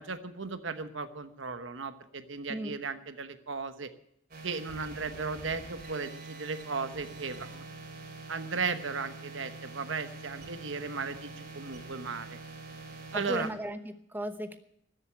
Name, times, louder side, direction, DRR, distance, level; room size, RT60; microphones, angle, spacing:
voice 1, 0.0-3.9 4.4-7.6 8.3-12.4 13.1-13.5, right 4 dB, 75° right, 10 dB, 1.1 m, -36 dB
sound 1, 4.3-13.5, right 3 dB, 45° right, 3.4 m, -45 dB
voice 2, 13.1-14.6, right 1 dB, 10° right, 9 dB, 0.9 m, -36 dB
13.5 x 8.1 x 9.0 m, 0.74 s
head